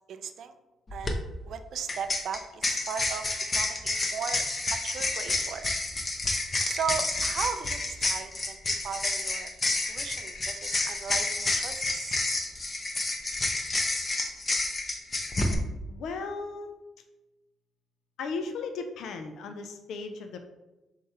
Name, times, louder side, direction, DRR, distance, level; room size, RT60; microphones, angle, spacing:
voice 1, 0.1-0.5 0.9-1.2 1.5-5.7 6.6-9.5 9.9-12.1, right 7 dB, 70° right, 9 dB, 0.4 m, -37 dB
sound 1, 0.9-1.1 1.9-15.5, left 2 dB, 30° left, 0.6 m, -29 dB
voice 2, 15.9-16.7 18.2-20.4, left 4 dB, 75° left, 6 dB, 0.3 m, -36 dB
3.5 x 3.0 x 4.2 m, 1.0 s
cardioid pair, 90°, 0 cm